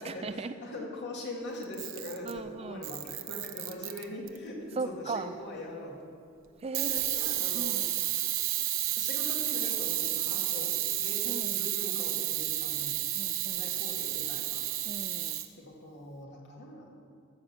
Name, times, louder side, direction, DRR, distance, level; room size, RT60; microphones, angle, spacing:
voice 1, 0.0-0.5 2.2-2.8 4.8-5.3 6.6-6.9 7.3-7.8 11.3-11.7 13.1-13.7 14.9-15.4, right 4 dB, 30° right, 10 dB, 0.4 m, -38 dB
voice 2, 0.6-6.0 6.7-7.8 9.0-12.9 13.5-14.6 15.6-16.9, left 1 dB, 60° left, -2 dB, 2.4 m, -42 dB
Camera, 1.6-2.4 2.8-4.4 6.7-15.5, right 14 dB, 70° right, 0.7 m, -31 dB
13.5 x 6.6 x 7.6 m, 2.5 s
head